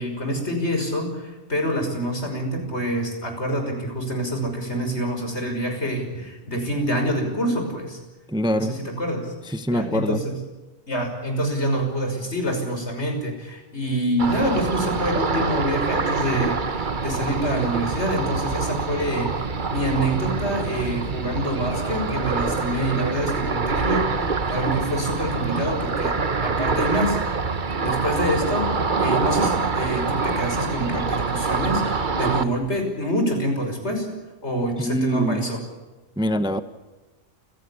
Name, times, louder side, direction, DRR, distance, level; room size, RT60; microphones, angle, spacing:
voice 1, 0.0-8.0 8.6-9.3 9.7-10.3 10.9-26.1 26.4-27.2 27.8-34.1 34.4-35.6, equal, 65° left, 4 dB, 6.3 m, -26 dB
voice 2, 8.3-8.8 9.4-10.2 34.8-35.4 36.2-36.6, equal, 5° right, 10 dB, 0.9 m, -24 dB
Ocean, 14.2-32.4, right 4 dB, 45° right, 1.3 m, -25 dB
29.0 x 16.0 x 8.5 m, 1.2 s
omnidirectional pair, 1.2 m